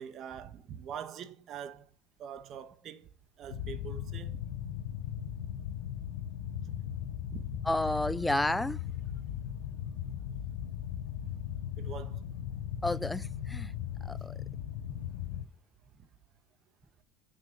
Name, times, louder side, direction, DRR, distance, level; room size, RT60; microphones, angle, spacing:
voice 1, 0.0-1.9 2.2-3.1 3.4-4.5 6.2-6.3 6.6-6.7 7.3-7.7 9.9-10.1 11.2-11.4 11.8-12.3, right 8 dB, 50° right, 1.6 m, -44 dB
sound 1, 3.5-15.4, left 10 dB, 85° left, 1.1 m, -38 dB
voice 2, 7.6-8.8 12.8-13.7 14.0-14.4, left 1 dB, 5° left, 0.6 m, -31 dB
9.4 x 7.0 x 6.8 m
supercardioid pair, 95°, 0 cm